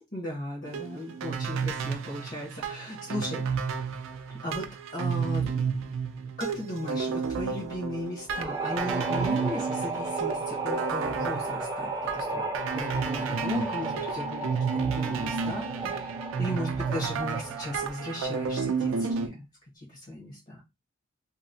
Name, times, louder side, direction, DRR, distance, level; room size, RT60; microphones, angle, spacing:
voice 1, 0.1-3.4 4.3-5.6 6.4-12.4 12.7-14.5 14.7-19.4 20.1-20.6, left 1 dB, 45° left, -4 dB, 1.1 m, -36 dB
sound 1, 0.7-19.3, right 5 dB, 85° right, 0.4 m, -32 dB
sound 2, 8.3-18.0, right 3 dB, 20° right, 0.5 m, -34 dB
2.8 x 2.1 x 2.5 m, 0.23 s
head